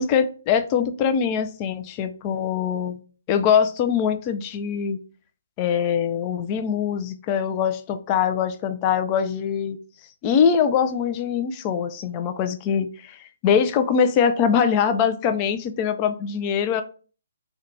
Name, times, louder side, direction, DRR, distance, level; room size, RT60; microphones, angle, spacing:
voice 1, 0.0-3.0 3.3-5.0 5.6-9.8 10.2-16.8, left 7 dB, 30° left, 9 dB, 0.3 m, -23 dB
2.8 x 2.2 x 3.8 m, 0.38 s
hypercardioid pair, 145°, 0 cm